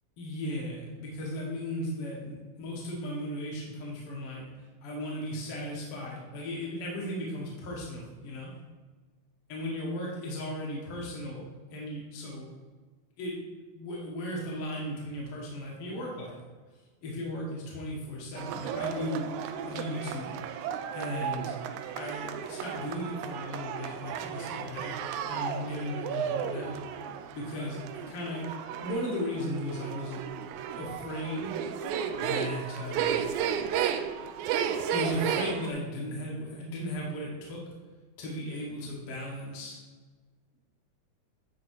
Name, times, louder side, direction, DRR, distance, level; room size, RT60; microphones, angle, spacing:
voice 1, 0.2-4.4 4.8-8.5 9.5-11.4 11.7-12.5 13.2-13.4 13.7-16.4 17.0-19.2 19.6-20.3 20.9-21.5 21.9-25.0 25.3-26.8 27.3-28.4 28.8-30.4 30.8-31.5 32.1-33.3 34.9-37.6 38.2-39.8, left 1 dB, 60° left, -3 dB, 1.8 m, -36 dB
sound 1, 18.4-35.7, right 8 dB, 85° right, 1.9 m, -34 dB
10.5 x 3.6 x 4.5 m, 1.4 s
omnidirectional pair, 3.3 m